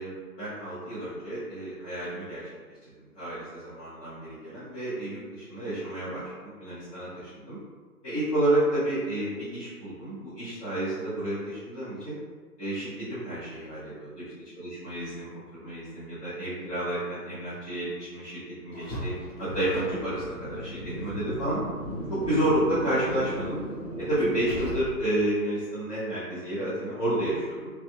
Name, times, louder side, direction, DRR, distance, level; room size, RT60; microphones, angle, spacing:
voice 1, 0.0-2.4 2.8-7.6 8.0-12.2 12.6-14.2 14.5-19.1 19.4-21.6 22.1-23.6 24.0-27.7, right 1 dB, 10° left, -16 dB, 1.3 m, -30 dB
Car, 18.7-25.2, equal, 40° left, 1.2 m, -36 dB
4.1 x 2.0 x 2.4 m, 1.4 s
figure-of-eight pair, 150°, 47 cm